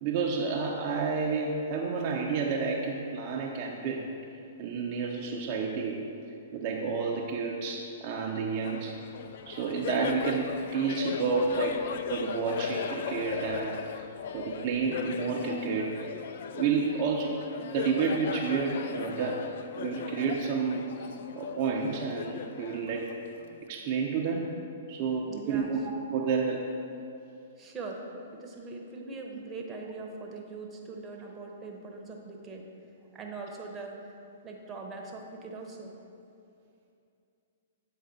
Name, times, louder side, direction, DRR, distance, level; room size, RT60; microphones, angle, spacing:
voice 1, 0.0-4.1 4.6-6.0 6.5-9.0 9.5-14.0 14.3-16.0 16.5-23.1 23.7-24.5 24.9-25.8 26.1-26.7, right 5 dB, 45° right, -1 dB, 0.6 m, -30 dB
Laughter, 8.6-23.6, left 7 dB, 60° left, 0.3 m, -38 dB
voice 2, 25.2-25.7 27.6-32.7 33.1-34.1 34.4-35.9, right 3 dB, 20° right, 0 dB, 0.8 m, -41 dB
7.6 x 4.0 x 4.0 m, 2.6 s
hypercardioid pair, 120°, 0 cm